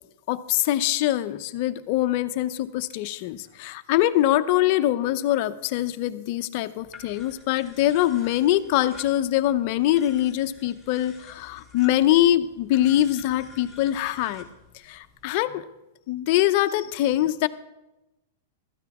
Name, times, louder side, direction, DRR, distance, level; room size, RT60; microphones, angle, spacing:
voice 1, 0.3-14.4 14.8-15.6 16.1-17.5, left 13 dB, 45° left, 11 dB, 0.7 m, -23 dB
sound 1, 6.8-15.4, left 3 dB, 5° right, 3.3 m, -49 dB
16.0 x 13.0 x 3.6 m, 0.96 s
supercardioid pair, 145°, 0 cm